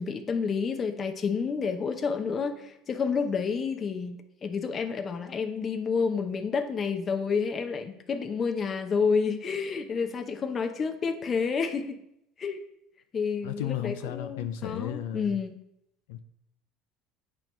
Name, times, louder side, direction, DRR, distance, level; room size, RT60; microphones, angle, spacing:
voice 1, 0.0-12.0 12.4-12.6 13.1-15.6, left 5 dB, 35° left, 6 dB, 0.7 m, -29 dB
voice 2, 13.4-15.3 16.1-16.2, left 11 dB, 90° left, 9 dB, 0.5 m, -34 dB
8.8 x 3.0 x 5.3 m, 0.80 s
supercardioid pair, 110°, 0 cm